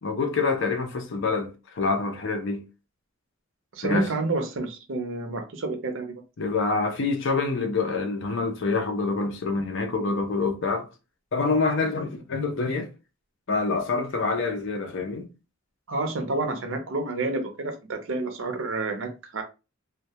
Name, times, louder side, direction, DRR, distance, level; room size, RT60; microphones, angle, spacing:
voice 1, 0.0-2.6 3.8-4.1 6.4-10.9 11.3-12.9 13.5-15.3, left 3 dB, 65° left, 0.6 m, -26 dB
voice 2, 3.7-6.2 15.9-19.4, right 3 dB, 70° right, 0.6 m, -29 dB
2.2 x 2.2 x 2.7 m
head